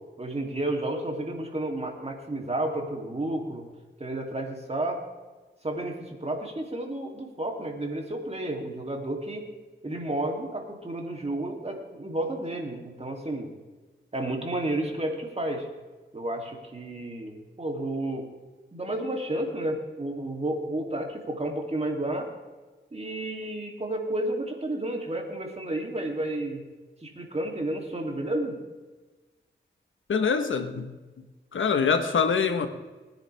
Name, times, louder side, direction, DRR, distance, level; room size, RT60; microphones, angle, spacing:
voice 1, 0.2-3.6 4.0-5.0 5.6-9.5 9.8-13.5 14.1-15.7 16.1-18.3 18.7-22.3 22.9-26.6 27.0-28.6, right 1 dB, 35° right, 1 dB, 2.9 m, -31 dB
voice 2, 30.1-30.9 31.5-32.7, left 6 dB, 85° left, 7 dB, 1.2 m, -24 dB
20.5 x 9.9 x 3.5 m, 1.3 s
cardioid pair, 60°, 20 cm